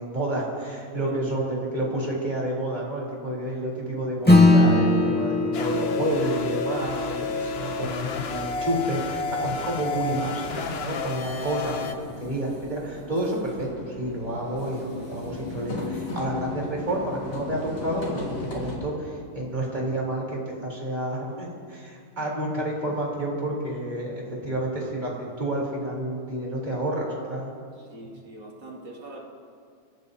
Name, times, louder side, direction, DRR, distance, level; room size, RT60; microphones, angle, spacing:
voice 1, 0.0-27.5, right 1 dB, 20° right, -4 dB, 3.9 m, -30 dB
Acoustic guitar / Strum, 4.3-9.0, left 2 dB, 5° left, 1.7 m, -21 dB
sound 1, 5.5-11.9, left 4 dB, 75° left, 0.5 m, -31 dB
sound 2, 6.7-18.8, left 2 dB, 55° left, 3.5 m, -38 dB
voice 2, 27.9-29.3, right 1 dB, 60° right, -2 dB, 3.1 m, -41 dB
29.5 x 15.5 x 2.8 m, 2.2 s
omnidirectional pair, 2.2 m